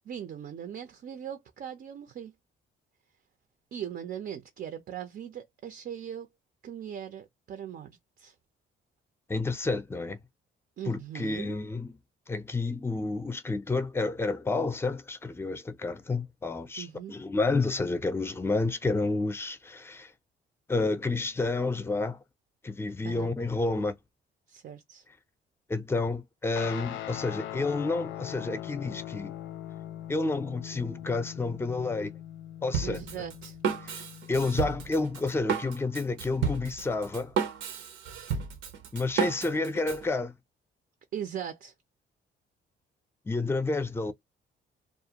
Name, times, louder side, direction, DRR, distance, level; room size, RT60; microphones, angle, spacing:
voice 1, 0.1-2.3 3.7-6.3 6.6-8.3 10.8-11.6 16.8-17.2 23.0-23.3 24.5-25.0 32.8-33.6 41.1-41.7, right 9 dB, 50° right, 0.5 m, -39 dB
voice 2, 9.3-10.2 10.9-11.9 12.3-20.1 20.7-22.2 22.6-23.9 25.7-29.3 30.1-32.1 32.6-33.0 33.8-34.0 34.3-37.3 38.9-40.3 43.3-44.1, left 3 dB, 10° left, 0.5 m, -30 dB
Guitar, 26.6-35.3, left 12 dB, 75° left, 0.4 m, -41 dB
Drum kit, 32.7-40.0, right 7 dB, 85° right, 0.8 m, -32 dB
2.5 x 2.2 x 2.8 m
cardioid pair, 90°, 20 cm